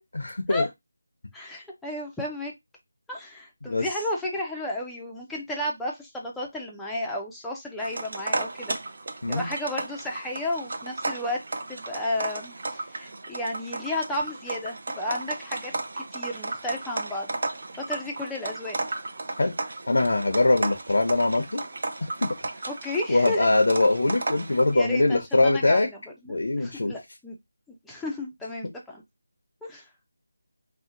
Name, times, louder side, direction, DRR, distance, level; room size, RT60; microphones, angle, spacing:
voice 1, 0.2-0.7 3.6-3.9 9.2-9.5 19.4-19.5 19.9-21.6 22.0-22.3 23.1-25.9 26.3-26.9, left 2 dB, 75° left, 0.6 m, -22 dB
voice 2, 1.3-2.5 3.1-8.8 9.3-11.4 11.7-15.7 16.0-17.3 17.7-18.8 22.7-23.5 24.7-26.0 26.2-27.4 27.8-29.0 29.6-29.9, left 1 dB, 5° left, 0.4 m, -33 dB
sound 1, 7.8-24.7, right 2 dB, 55° right, 0.5 m, -34 dB
2.7 x 2.1 x 3.7 m
figure-of-eight pair, 170°, 0 cm